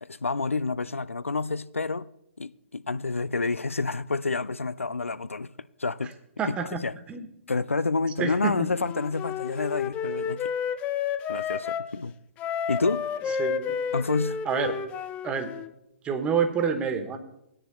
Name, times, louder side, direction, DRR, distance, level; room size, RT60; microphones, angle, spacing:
voice 1, 0.0-2.1 2.4-6.1 6.5-6.9 7.5-10.5 11.3-12.1 12.7-13.1 13.9-14.4, left 3 dB, 85° left, 0.3 m, -29 dB
voice 2, 6.4-6.8 7.1-7.3 8.2-8.7 13.4-13.8 14.5-14.7 15.2-15.5 16.0-17.2, right 6 dB, 15° right, 1.0 m, -27 dB
Wind instrument woodwind instrument, 8.7-11.9 12.4-15.7, left 7 dB, 20° left, 0.4 m, -31 dB
18.5 x 9.9 x 2.2 m
figure-of-eight pair, 125°, 7 cm